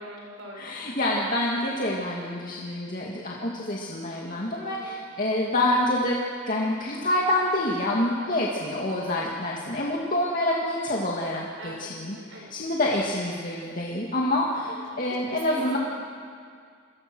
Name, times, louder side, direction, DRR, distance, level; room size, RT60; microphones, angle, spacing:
voice 1, 0.0-0.9 4.6-5.1 11.6-11.9 12.3-12.5 14.9-15.0 15.3-15.8, right 1 dB, 70° right, 1 dB, 6.0 m, -42 dB
voice 2, 0.6-15.8, left 1 dB, 45° left, -3 dB, 2.3 m, -27 dB
28.5 x 23.0 x 6.3 m, 2.1 s
head